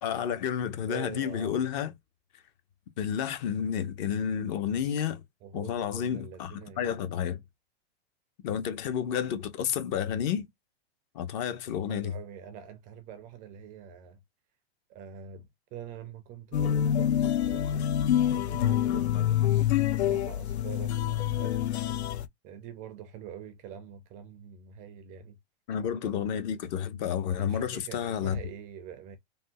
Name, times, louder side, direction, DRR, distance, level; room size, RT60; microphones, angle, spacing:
voice 1, 0.0-1.9 3.0-5.2 5.5-7.4 8.4-10.5 11.1-12.1 25.7-28.4, left 8 dB, 45° left, 0.8 m, -30 dB
voice 2, 0.9-1.5 5.4-7.0 11.9-14.2 14.9-17.9 18.3-19.4 19.9-21.0 21.4-22.0 22.4-25.4 27.4-29.2, right 9 dB, 25° right, 0.4 m, -45 dB
sound 1, 16.5-22.3, left 11 dB, 85° left, 0.5 m, -26 dB
3.4 x 2.3 x 2.6 m
hypercardioid pair, 130°, 32 cm